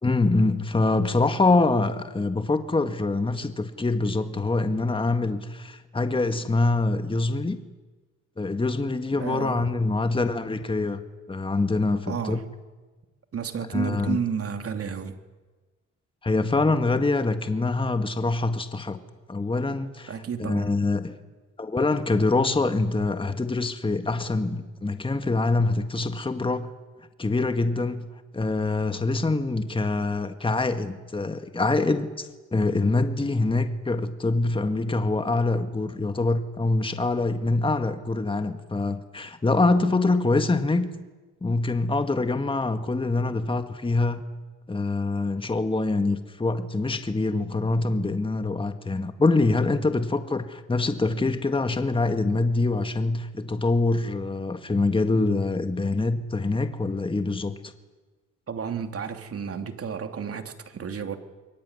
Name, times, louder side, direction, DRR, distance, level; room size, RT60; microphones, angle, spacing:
voice 1, 0.0-7.6 8.4-11.0 11.3-12.4 13.7-14.2 16.2-19.0 19.3-20.1 20.4-21.2 21.6-26.7 27.2-28.1 28.3-40.9 41.4-44.2 44.7-57.7, left 3 dB, 15° left, 8 dB, 1.8 m, -25 dB
voice 2, 9.1-9.7 12.1-12.4 13.3-15.2 20.1-20.7 58.5-61.2, right 7 dB, 50° right, 7 dB, 3.0 m, -32 dB
27.0 x 22.5 x 9.8 m, 1.3 s
cardioid pair, 90°, 30 cm